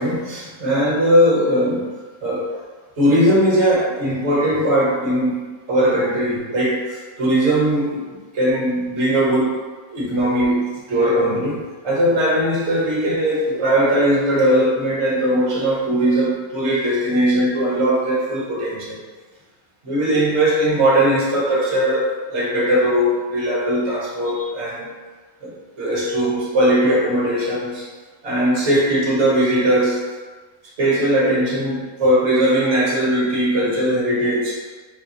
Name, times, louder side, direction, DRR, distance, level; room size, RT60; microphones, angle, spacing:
voice 1, 0.0-1.9 2.2-2.6 3.0-8.0 8.3-9.6 9.9-19.0 19.8-24.9 25.4-27.9 28.2-30.0 30.8-34.6, right 1 dB, 50° right, -5 dB, 1.4 m, -19 dB
4.2 x 3.5 x 2.9 m, 1.3 s
omnidirectional pair, 1.6 m